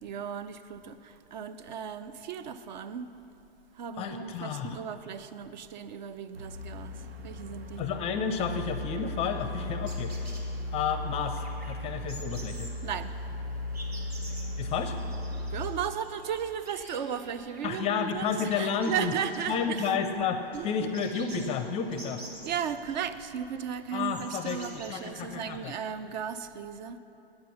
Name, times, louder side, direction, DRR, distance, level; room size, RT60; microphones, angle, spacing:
voice 1, 0.0-3.1 3.7-7.8 10.6-10.7 12.8-13.1 15.5-19.9 20.5-20.9 22.4-27.0, right 8 dB, 50° right, 12 dB, 0.5 m, -36 dB
voice 2, 4.0-4.8 7.8-10.3 10.7-12.7 14.6-15.0 17.6-19.1 19.5-22.2 23.9-25.7, left 6 dB, 20° left, 8 dB, 0.5 m, -31 dB
sound 1, 6.3-15.7, left 1 dB, 75° right, 0.9 m, -36 dB
sound 2, 9.3-25.7, right 1 dB, 90° right, 2.0 m, -50 dB
8.7 x 7.6 x 7.0 m, 2.8 s
figure-of-eight pair, 110°, 30 cm